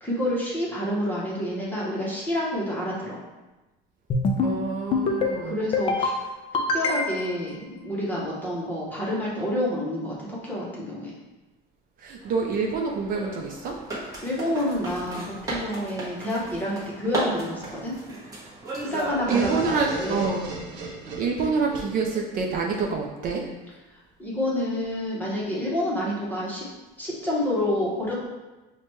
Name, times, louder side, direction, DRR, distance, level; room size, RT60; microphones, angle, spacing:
voice 1, 0.0-3.2 5.4-6.1 6.7-11.1 14.2-17.9 18.8-20.3 24.2-26.7 27.0-28.3, left 1 dB, 10° left, -5 dB, 0.8 m, -28 dB
sound 1, 4.1-4.6 4.9-5.4 5.7-6.2 6.5-7.3, left 3 dB, 30° left, 0.3 m, -24 dB
voice 2, 4.4-5.6 12.0-13.8 19.3-20.5 20.7-20.8 21.2-23.4, right 4 dB, 45° right, 1 dB, 0.4 m, -27 dB
sound 2, 12.2-20.0, right 2 dB, 15° right, 0.9 m, -35 dB
sound 3, 19.3-23.1, right 4 dB, 75° right, 0.9 m, -37 dB
5.7 x 2.2 x 3.0 m, 1.1 s
cardioid pair, 170°, 20 cm